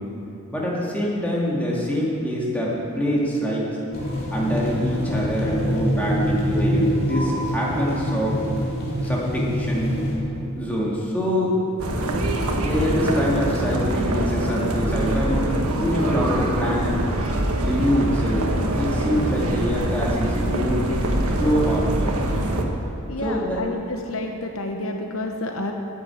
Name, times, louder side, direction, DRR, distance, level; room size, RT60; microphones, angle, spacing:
voice 1, 0.5-3.7 4.3-8.3 9.0-10.0 10.4-11.5 12.6-15.5 15.8-17.0 17.6-18.4 18.8-20.9 21.4-22.1 23.2-23.6, equal, 5° left, -5 dB, 2.3 m, -25 dB
sound 1, 3.9-10.1, equal, 45° left, 3.1 m, -24 dB
sound 2, 11.8-22.6, right 1 dB, 75° right, 1.3 m, -24 dB
voice 2, 23.1-25.7, left 2 dB, 65° left, 3 dB, 1.0 m, -29 dB
10.5 x 8.4 x 8.4 m, 3.0 s
head